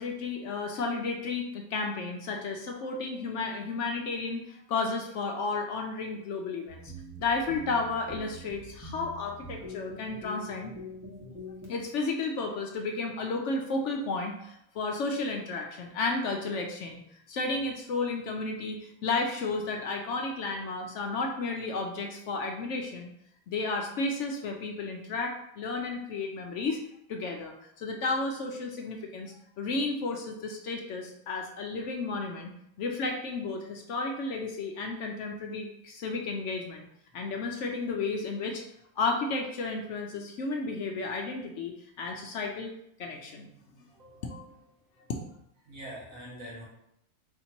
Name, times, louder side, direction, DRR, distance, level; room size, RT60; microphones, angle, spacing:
voice 1, 0.0-6.9 7.2-10.7 11.7-17.0 17.3-23.1 23.5-26.8 27.1-32.5 32.8-36.9 37.1-38.6 39.0-42.7 43.0-43.5 44.3-44.6, left 3 dB, 65° left, 2 dB, 0.8 m, -33 dB
sound 1, 6.7-11.7, left 1 dB, 15° right, 1.0 m, -44 dB
voice 2, 43.9-44.5 45.0-45.1 45.6-46.6, equal, 70° right, -4 dB, 1.7 m, -45 dB
4.3 x 2.8 x 4.2 m, 0.77 s
omnidirectional pair, 1.5 m